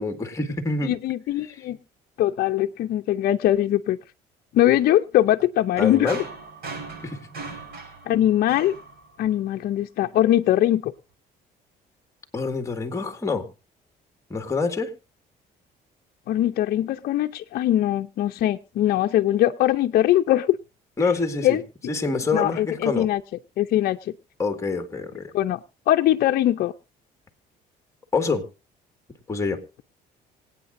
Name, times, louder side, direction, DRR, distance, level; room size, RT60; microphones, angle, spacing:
voice 1, 0.0-0.9 5.8-6.2 7.0-7.5 12.3-13.5 14.3-14.9 21.0-21.6 21.9-23.1 24.4-25.3 28.1-28.4 29.3-29.6, left 4 dB, 15° left, 7 dB, 1.9 m, -26 dB
voice 2, 0.8-1.8 2.2-4.0 4.5-6.1 8.1-8.7 9.2-10.9 16.3-20.6 21.4-21.6 22.3-23.2 23.6-24.1 25.3-25.6 25.9-26.7, left 13 dB, 65° left, 5 dB, 0.6 m, -21 dB
sound 1, 5.8-9.6, right 3 dB, 65° right, 6.7 m, -38 dB
26.0 x 8.8 x 2.6 m, 0.30 s
cardioid pair, 110°, 17 cm